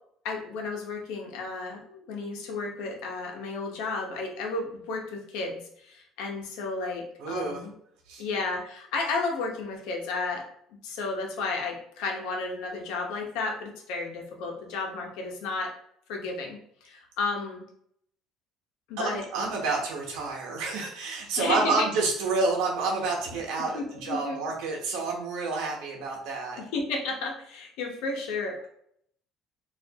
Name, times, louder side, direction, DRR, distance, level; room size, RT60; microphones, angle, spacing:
voice 1, 0.2-7.7 8.2-10.4 10.7-15.7 16.1-17.6 18.9-19.5 21.4-21.9 23.7-24.4 26.6-28.7, left 3 dB, 80° left, 1 dB, 0.8 m, -33 dB
voice 2, 7.2-7.6 8.1-8.2 19.0-26.6, right 3 dB, 80° right, -1 dB, 0.8 m, -29 dB
4.3 x 2.5 x 2.8 m, 0.69 s
cardioid pair, 130°, 0 cm